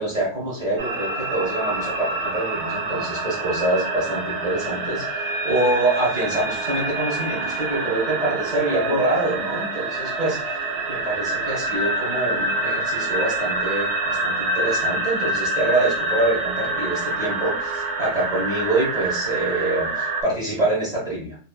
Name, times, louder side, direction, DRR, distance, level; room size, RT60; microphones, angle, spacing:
voice 1, 0.0-10.6 10.9-21.4, right 2 dB, 40° right, -5 dB, 1.1 m, -25 dB
sound 1, 0.8-20.2, right 2 dB, 80° right, 0.9 m, -26 dB
2.7 x 2.6 x 2.3 m, 0.41 s
omnidirectional pair, 1.2 m